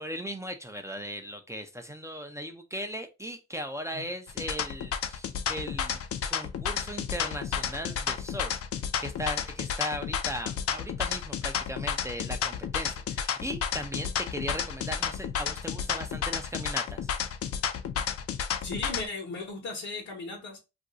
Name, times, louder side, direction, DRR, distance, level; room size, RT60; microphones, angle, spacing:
voice 1, 0.0-6.0 6.3-8.5 9.0-17.1, equal, 10° right, 0.4 m, -38 dB
sound 1, 4.3-19.1, left 8 dB, 50° left, 0.5 m, -31 dB
voice 2, 18.6-20.6, left 3 dB, 70° left, 1.0 m, -36 dB
2.5 x 2.2 x 3.8 m
cardioid pair, 90°, 30 cm